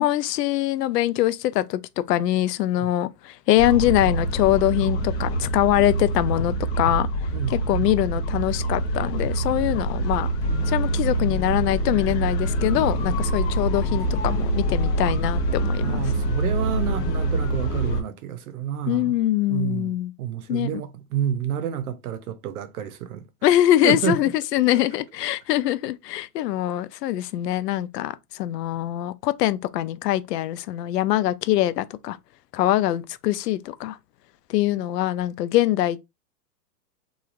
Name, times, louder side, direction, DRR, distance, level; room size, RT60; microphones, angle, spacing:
voice 1, 0.0-1.8 2.1-7.1 7.5-10.3 10.7-16.0 18.9-20.1 20.5-20.7 23.4-32.2 32.5-34.0 34.5-36.0, left 14 dB, 80° left, 0.6 m, -23 dB
sound 1, 3.6-18.0, right 1 dB, 45° left, 0.7 m, -25 dB
voice 2, 7.3-7.6 15.8-19.2 19.5-23.5 23.8-24.2, right 9 dB, 65° right, 0.7 m, -29 dB
3.0 x 2.3 x 2.4 m
supercardioid pair, 160°, 48 cm